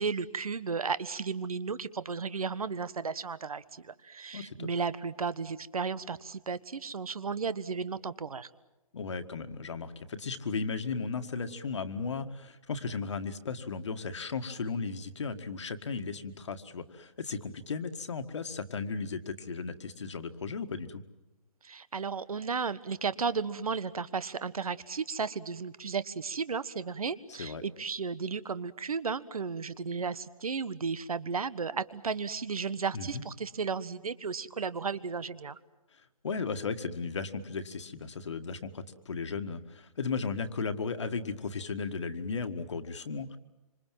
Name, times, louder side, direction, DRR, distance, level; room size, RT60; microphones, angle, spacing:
voice 1, 0.0-8.5 21.6-35.6, right 5 dB, 80° right, 16 dB, 1.4 m, -34 dB
voice 2, 4.3-4.7 8.9-21.0 27.3-27.6 32.9-33.2 36.2-43.4, left 4 dB, 50° left, 8 dB, 1.8 m, -35 dB
26.5 x 26.0 x 7.6 m, 1.0 s
hypercardioid pair, 170°, 19 cm